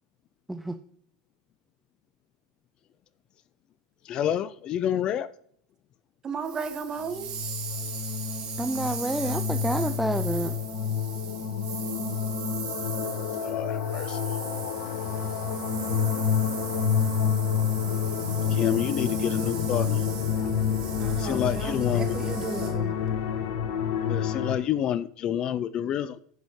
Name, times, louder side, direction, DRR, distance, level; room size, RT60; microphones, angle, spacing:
voice 1, 4.1-5.3 13.4-14.2 18.5-20.0 21.2-22.2 24.0-26.2, left 10 dB, 40° left, 0.5 m, -28 dB
voice 2, 6.2-7.3 21.0-22.9, right 5 dB, 30° right, 1.4 m, -34 dB
sound 1, 6.4-22.7, right 7 dB, 50° right, 3.2 m, -39 dB
sound 2, 7.0-24.6, left 7 dB, 65° left, 1.5 m, -28 dB
voice 3, 8.6-10.5, right 1 dB, 5° right, 0.5 m, -29 dB
15.5 x 6.3 x 3.2 m
hypercardioid pair, 95°, 2 cm